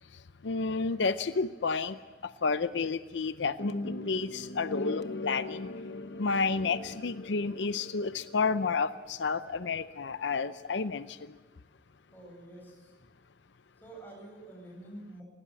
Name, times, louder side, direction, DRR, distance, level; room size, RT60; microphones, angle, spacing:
voice 1, 0.4-2.0 2.2-3.8 4.0-5.7 6.2-11.3, left 4 dB, 80° left, 13 dB, 0.6 m, -31 dB
sound 1, 3.6-8.7, left 2 dB, 65° left, 1.0 m, -39 dB
voice 2, 12.1-12.9 13.8-15.2, right 1 dB, 10° left, -1 dB, 8.0 m, -48 dB
20.0 x 17.5 x 8.2 m, 1.3 s
head